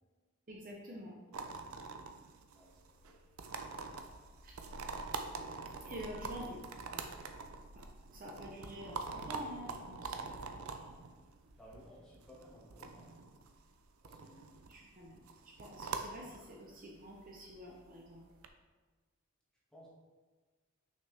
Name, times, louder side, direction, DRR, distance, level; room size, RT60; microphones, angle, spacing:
voice 1, 0.5-1.1 4.4-4.5 5.9-6.6 6.8-7.0 8.1-10.4 14.7-15.2 15.6-18.2, equal, 40° right, -2 dB, 0.8 m, -47 dB
sound 1, 1.3-18.5, right 4 dB, 85° right, 0.6 m, -45 dB
voice 2, 5.8-6.6 11.5-13.1 14.0-14.6 19.7-19.9, equal, 5° left, -8 dB, 1.9 m, -58 dB
5.9 x 5.8 x 3.4 m, 1.3 s
head